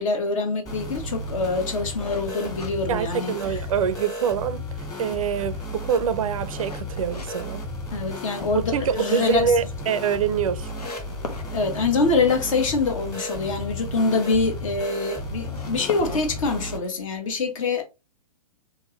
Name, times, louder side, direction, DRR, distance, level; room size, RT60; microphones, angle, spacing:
voice 1, 0.0-3.6 7.9-9.4 11.5-17.8, left 3 dB, 55° left, 1.2 m, -25 dB
sound 1, 0.7-16.8, left 1 dB, 20° left, 1.6 m, -34 dB
sound 2, 2.0-3.7 4.1-4.2 4.8-7.3 7.7-8.4 8.8-8.9 9.2-9.3 9.5-9.6 10.2-10.3 10.7-11.5 15.2-17.1, left 2 dB, 85° left, 0.9 m, -39 dB
voice 2, 2.9-4.6 5.0-7.7 8.5-10.7, right 7 dB, 60° right, 0.4 m, -25 dB
3.6 x 2.9 x 3.1 m
figure-of-eight pair, 115°, 20 cm